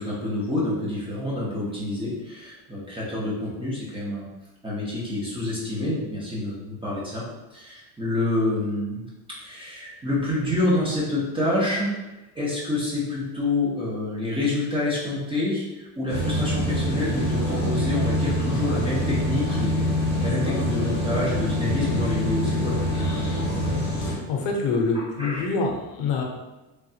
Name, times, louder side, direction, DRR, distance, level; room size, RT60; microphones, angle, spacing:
voice 1, 0.0-4.3 4.6-7.3 7.5-11.9 12.3-19.8 20.2-23.1 24.9-25.5, left 2 dB, 10° right, -7 dB, 0.6 m, -27 dB
sound 1, 16.1-24.2, left 1 dB, 20° left, 0.8 m, -25 dB
voice 2, 24.0-26.2, left 3 dB, 65° left, 1 dB, 0.7 m, -26 dB
3.2 x 2.3 x 2.7 m, 1.0 s
cardioid pair, 140°, 46 cm